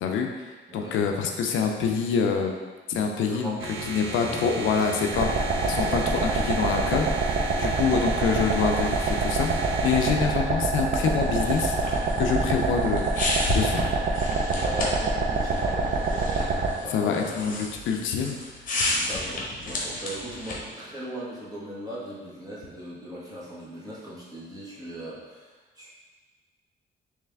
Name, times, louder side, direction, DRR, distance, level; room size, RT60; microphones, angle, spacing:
voice 1, 0.0-11.7 12.2-13.1 13.5-13.9 16.9-18.4, left 6 dB, 75° left, 3 dB, 0.5 m, -26 dB
voice 2, 0.7-1.1 3.0-3.6 4.2-4.5 7.6-7.8 14.5-17.2 18.7-25.5 25.8-25.9, equal, 20° right, -7 dB, 1.2 m, -39 dB
sound 1, 3.6-10.2, right 4 dB, 90° right, 0.6 m, -35 dB
sound 2, 5.1-16.7, right 3 dB, 45° right, 0.6 m, -26 dB
sound 3, 11.1-20.7, left 2 dB, 45° left, 1.0 m, -32 dB
3.3 x 3.2 x 3.4 m, 1.3 s
cardioid pair, 90°, 20 cm